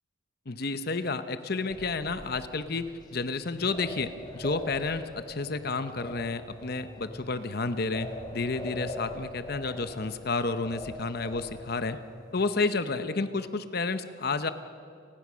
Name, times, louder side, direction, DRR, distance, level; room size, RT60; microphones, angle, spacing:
voice 1, 0.5-12.0 12.3-14.5, left 3 dB, 50° left, 11 dB, 0.9 m, -31 dB
sound 1, 1.7-12.3, left 1 dB, 20° left, 2.9 m, -43 dB
29.5 x 19.5 x 6.3 m, 2.5 s
head